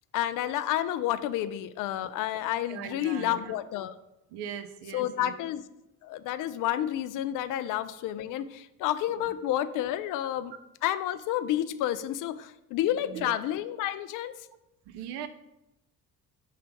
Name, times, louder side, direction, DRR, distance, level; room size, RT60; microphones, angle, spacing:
voice 1, 0.1-3.9 4.9-5.6 6.0-10.5 10.8-14.5, left 12 dB, 45° left, 13 dB, 0.4 m, -30 dB
voice 2, 2.7-3.5 4.3-5.3 9.2-9.3 12.9-13.4 14.9-15.3, right 9 dB, 55° right, 9 dB, 0.7 m, -40 dB
5.6 x 3.3 x 5.2 m, 0.92 s
figure-of-eight pair, 45°, 47 cm